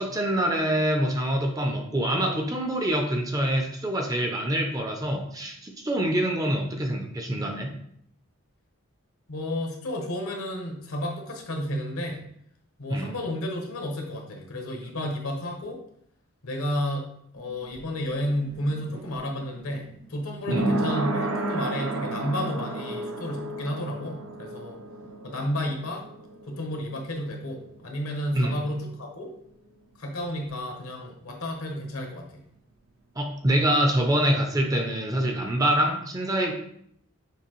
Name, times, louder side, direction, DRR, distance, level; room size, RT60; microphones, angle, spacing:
voice 1, 0.0-7.7 12.9-13.1 20.5-20.7 28.3-28.6 33.2-36.5, right 1 dB, 15° right, 3 dB, 0.5 m, -25 dB
voice 2, 9.3-12.2 12.8-15.8 16.4-17.0 17.3-24.8 25.2-26.0 26.5-29.3 30.0-32.4, left 1 dB, 75° left, 2 dB, 1.0 m, -32 dB
sound 1, 17.4-28.9 29.2-29.3, right 1 dB, 65° right, 0.6 m, -33 dB
6.6 x 2.6 x 3.0 m, 0.69 s
head